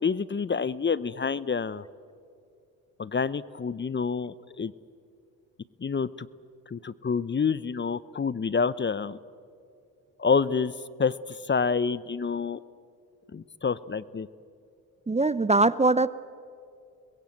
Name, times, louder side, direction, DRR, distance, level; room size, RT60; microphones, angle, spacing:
voice 1, 0.0-1.8 3.0-4.7 5.8-6.3 6.7-9.2 10.2-10.7 11.0-12.6 13.3-14.3, left 5 dB, 25° left, 18 dB, 0.8 m, -28 dB
voice 2, 15.1-16.1, right 3 dB, 15° right, 17 dB, 0.7 m, -22 dB
28.5 x 21.5 x 7.9 m, 2.4 s
hypercardioid pair, 55°, 42 cm